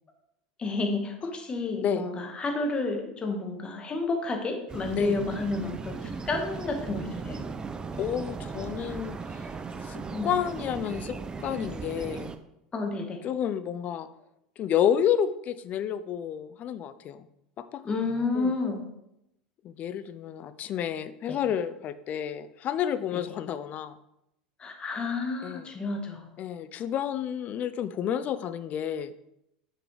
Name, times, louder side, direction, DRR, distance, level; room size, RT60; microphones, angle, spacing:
voice 1, 0.6-7.4 10.1-10.3 12.7-13.2 17.8-18.9 21.3-21.4 23.1-23.2 24.6-26.3, left 3 dB, 25° left, 4 dB, 1.3 m, -30 dB
sound 1, 4.7-12.4, right 4 dB, 20° right, 0.5 m, -37 dB
voice 2, 8.0-9.5 9.8-12.3 13.2-14.1 14.6-17.3 17.7-17.8 18.3-18.5 19.6-24.0 25.4-25.7 26.4-29.1, left 9 dB, 40° left, 13 dB, 0.4 m, -30 dB
6.7 x 6.1 x 3.1 m, 0.83 s
hypercardioid pair, 85°, 4 cm